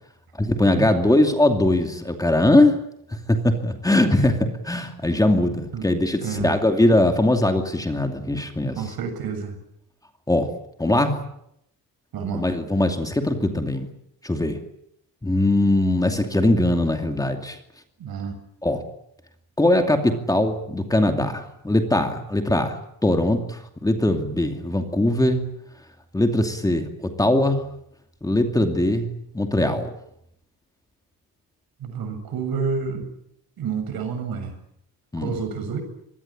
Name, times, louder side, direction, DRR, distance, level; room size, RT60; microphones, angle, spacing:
voice 1, 0.4-2.7 3.3-8.8 10.3-10.5 10.8-11.2 12.3-13.9 14.2-14.6 15.2-17.6 18.6-18.8 19.6-25.4 26.1-27.6 28.2-29.1 29.3-29.9 35.1-35.3, left 1 dB, 10° left, 5 dB, 2.6 m, -21 dB
voice 2, 4.0-4.4 5.7-5.8 6.2-6.5 8.8-9.6 12.1-12.5 18.0-18.4 31.8-33.1 33.6-34.5 35.2-35.8, right 6 dB, 70° right, 8 dB, 7.4 m, -29 dB
25.0 x 21.5 x 8.9 m, 0.76 s
cardioid pair, 165°, 37 cm